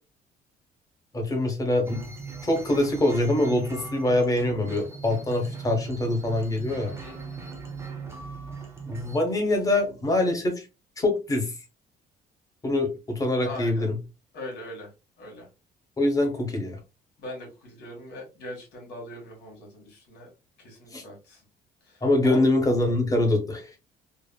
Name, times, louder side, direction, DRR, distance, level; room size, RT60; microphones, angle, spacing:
voice 1, 1.1-2.0 2.4-6.9 8.9-10.7 11.0-11.5 12.6-14.0 16.0-16.8 20.9-21.0 22.0-23.8, left 1 dB, 20° left, 2 dB, 1.0 m, -24 dB
sound 1, 1.8-9.2, right 5 dB, 15° right, 0.7 m, -39 dB
voice 2, 6.9-7.6 13.4-13.9 14.3-14.9 15.2-15.5 17.2-20.3 20.6-21.4 21.8-22.5, left 1 dB, 75° left, 0 dB, 1.6 m, -41 dB
3.4 x 2.0 x 2.2 m, 0.29 s
cardioid pair, 110°, 17 cm